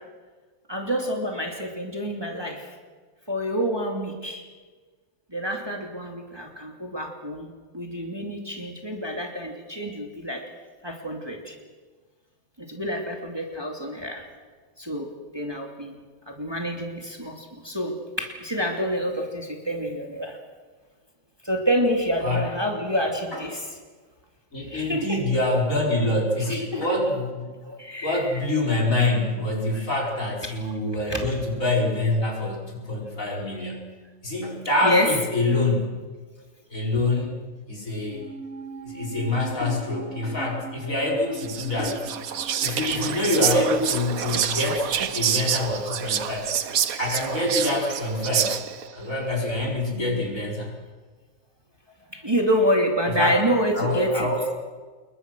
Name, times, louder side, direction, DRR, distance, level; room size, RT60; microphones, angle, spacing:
voice 1, 0.7-2.7 3.3-4.4 5.3-10.4 10.8-11.6 12.6-14.2 14.8-15.9 16.3-20.4 21.4-23.7 24.6-25.2 26.5-27.0 27.6-28.4 29.7-29.9 31.1-31.2 34.8-35.1 35.5-35.6 44.3-44.6 52.1-54.3, equal, 15° right, 1 dB, 2.6 m, -28 dB
voice 2, 24.5-27.5 28.0-33.8 34.2-35.9 36.7-37.4 37.7-38.2 38.8-42.0 42.6-46.5 47.0-48.6 48.9-50.7 53.1-53.4 53.7-54.5, left 2 dB, 65° left, -2 dB, 5.3 m, -25 dB
sound 1, 38.1-44.7 44.9-45.0, right 5 dB, 50° right, 1.9 m, -41 dB
Whispering, 41.3-48.9, right 9 dB, 70° right, 1.4 m, -27 dB
27.5 x 21.5 x 6.2 m, 1.4 s
omnidirectional pair, 1.5 m